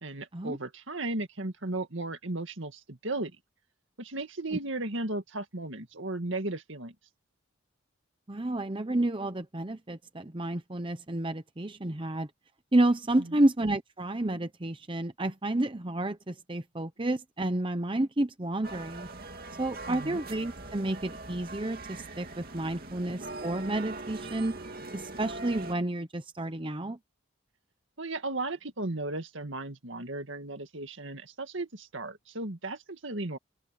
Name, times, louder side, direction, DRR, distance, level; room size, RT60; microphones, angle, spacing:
voice 1, 0.0-3.3 4.0-6.9 13.3-13.4 19.9-20.2 28.0-33.4, right 2 dB, 65° right, 2.0 m, -35 dB
voice 2, 8.3-12.3 12.7-19.1 19.6-24.6 24.9-27.0, right 1 dB, 25° right, 0.9 m, -30 dB
sound 1, 18.6-25.7, right 2 dB, 45° right, 2.7 m, -42 dB
open air
head